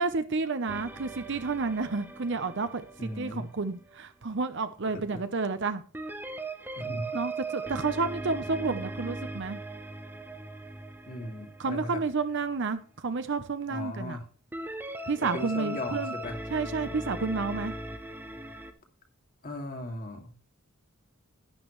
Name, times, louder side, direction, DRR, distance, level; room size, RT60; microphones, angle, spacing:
voice 1, 0.0-5.8 7.1-9.6 11.6-14.2 15.1-16.1 16.5-17.7, right 4 dB, 55° right, 0.8 m, -30 dB
sound 1, 0.7-4.0 5.9-12.5 14.5-18.7, right 2 dB, 10° right, 0.8 m, -39 dB
voice 2, 3.0-3.5 4.9-5.2 6.8-7.2 7.7-7.9 11.1-12.0 13.7-14.3 15.3-16.4 19.4-20.3, left 1 dB, 40° left, 2.2 m, -37 dB
11.5 x 10.0 x 3.2 m
head